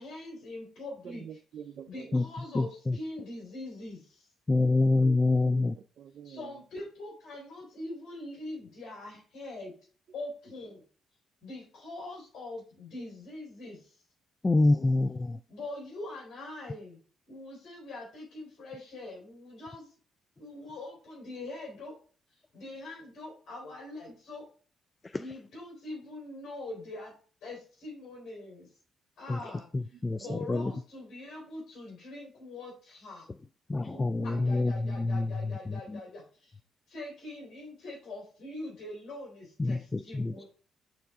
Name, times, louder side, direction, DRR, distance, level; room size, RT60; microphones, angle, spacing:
voice 1, 0.0-1.2 1.9-4.3 6.3-9.7 10.1-10.8 11.4-13.8 15.5-17.0 17.3-19.9 20.4-21.9 22.5-24.4 25.1-27.1 27.4-28.7 29.2-29.7 30.2-33.3 34.2-36.5 36.9-40.5, left 2 dB, 70° left, -2 dB, 3.8 m, -43 dB
voice 2, 1.0-2.3 4.5-5.7 6.0-6.5 30.2-30.4 30.7-30.8 33.9-34.5, right 8 dB, 65° right, 12 dB, 0.4 m, -47 dB
voice 3, 2.5-3.0 4.5-5.8 14.4-15.4 25.1-25.2 29.3-29.4 29.7-30.7 33.7-35.3 35.7-36.0 39.6-40.4, left 2 dB, 30° left, 14 dB, 0.3 m, -26 dB
7.9 x 4.5 x 3.6 m, 0.41 s
supercardioid pair, 55°, 0 cm